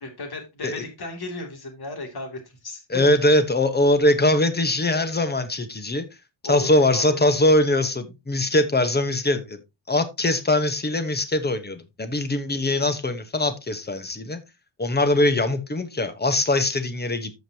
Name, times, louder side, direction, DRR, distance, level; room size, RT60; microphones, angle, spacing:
voice 1, 0.0-3.0 6.4-7.2, left 2 dB, 55° left, 2.6 m, -35 dB
voice 2, 2.9-6.1 6.4-9.6 9.9-14.4 14.8-17.3, left 1 dB, 20° left, 1.1 m, -22 dB
14.0 x 5.3 x 2.8 m
wide cardioid pair, 160°, 46 cm